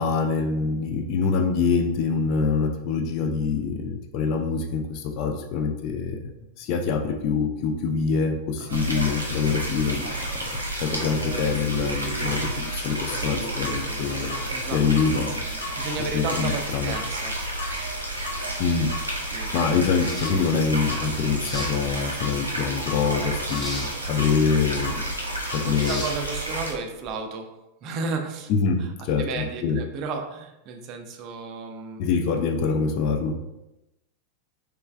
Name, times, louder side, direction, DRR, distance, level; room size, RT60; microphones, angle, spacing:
voice 1, 0.0-6.3 6.6-10.2 10.5-14.4 14.7-15.4 16.1-16.9 18.6-18.9 19.5-25.0 25.5-26.0 28.5-29.8 32.0-33.4, left 5 dB, 40° left, 4 dB, 0.4 m, -25 dB
sound 1, 8.7-26.7, right 1 dB, 85° right, 0.6 m, -31 dB
sound 2, 10.9-27.1, left 1 dB, 20° left, 0.8 m, -41 dB
sound 3, 13.6-13.8 14.3-14.5 15.0-15.1 15.6-15.8 16.3-16.5 16.9-17.1 17.6-17.8 18.2-18.4 18.9-19.1 19.6-19.7 20.2-20.5 20.9-21.1 21.5-21.7 22.2-22.4 22.9-23.0 23.5-23.7 24.2-24.4 24.8-25.0 25.5-25.7, left 4 dB, 70° left, 1.2 m, -36 dB
voice 2, 15.8-17.4 19.3-19.5 23.0-23.3 25.9-27.5 27.8-28.5 28.8-28.9 29.2-32.0, right 4 dB, 40° right, 5 dB, 0.4 m, -33 dB
3.2 x 3.2 x 2.2 m, 0.94 s
figure-of-eight pair, 90°, 0 cm